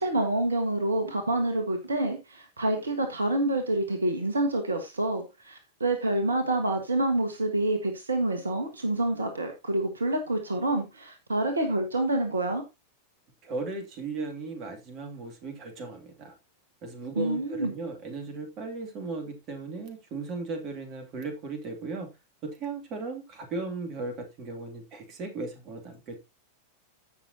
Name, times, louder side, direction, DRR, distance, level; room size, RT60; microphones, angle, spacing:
voice 1, 0.0-12.6 17.1-17.7, right 1 dB, 75° right, 7 dB, 1.5 m, -27 dB
voice 2, 13.4-16.3 16.8-22.1 22.4-26.2, right 3 dB, 35° right, 5 dB, 2.6 m, -36 dB
15.5 x 6.1 x 2.8 m, 0.23 s
figure-of-eight pair, 90°, 0 cm